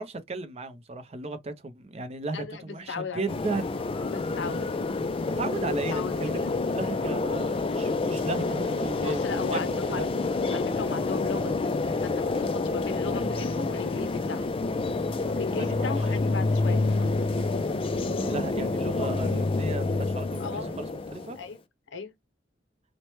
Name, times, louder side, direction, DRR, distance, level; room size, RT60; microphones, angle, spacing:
voice 1, 0.0-3.8 5.4-10.1 15.6-15.9 18.2-21.4, right 3 dB, 35° right, 0.5 m, -35 dB
voice 2, 2.3-3.2 4.1-4.7 5.9-6.5 9.0-10.1 10.5-11.5 12.0-14.5 15.3-17.2 20.4-20.7 21.4-21.6 21.9-22.1, left 5 dB, 90° left, 0.6 m, -36 dB
sound 1, 3.3-21.5, left 3 dB, 30° left, 0.4 m, -28 dB
3.0 x 2.1 x 3.1 m
head